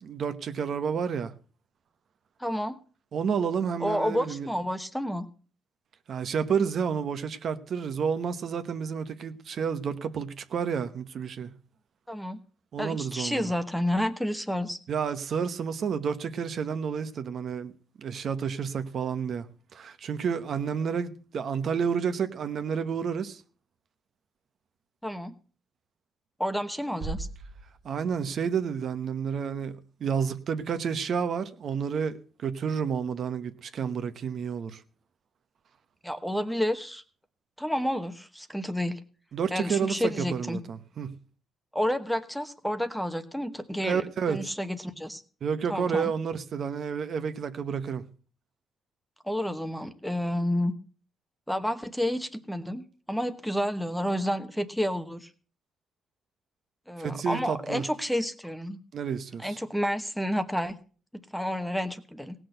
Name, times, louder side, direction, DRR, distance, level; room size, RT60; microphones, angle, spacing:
voice 1, 0.0-1.3 3.1-4.5 6.1-11.5 12.7-13.5 14.9-17.7 18.0-19.5 19.7-23.4 27.8-34.8 39.3-41.1 43.8-44.5 45.4-48.0 57.0-57.8 58.9-59.6, right 6 dB, 50° right, 1.0 m, -30 dB
voice 2, 2.4-2.8 3.8-5.3 12.1-12.4 12.8-14.8 25.0-25.3 26.4-27.3 36.0-37.0 37.6-39.0 39.5-40.6 41.7-45.2 45.7-46.1 49.2-50.7 51.5-55.3 56.9-58.8 59.4-60.7 61.3-62.3, equal, ahead, 1.0 m, -30 dB
sound 1, 27.0-28.9, right 3 dB, 65° right, 1.5 m, -40 dB
18.0 x 6.3 x 7.9 m
cardioid pair, 140°, 0 cm